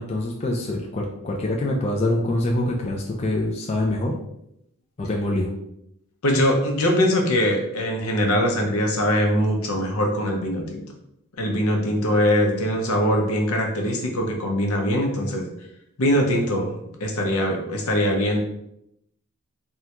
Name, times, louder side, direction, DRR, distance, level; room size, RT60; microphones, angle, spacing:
voice 1, 0.0-4.2 5.0-5.5, left 1 dB, 30° left, -1 dB, 0.3 m, -25 dB
voice 2, 6.2-10.8 11.4-15.4 16.0-18.4, equal, 80° left, 2 dB, 0.7 m, -22 dB
3.6 x 2.2 x 2.8 m, 0.79 s
head